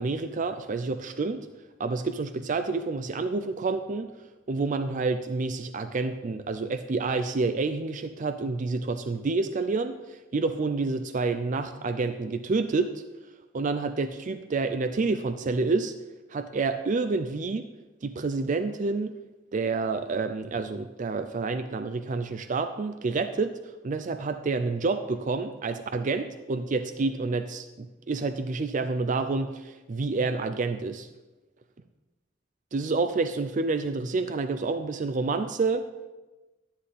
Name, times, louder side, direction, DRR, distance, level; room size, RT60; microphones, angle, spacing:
voice 1, 0.0-1.5 1.8-4.1 4.5-12.9 13.5-15.9 16.3-17.7 18.0-19.1 19.5-23.5 23.8-31.1 32.7-35.9, right 3 dB, 45° right, 9 dB, 0.4 m, -28 dB
13.0 x 10.0 x 3.3 m, 1.1 s
head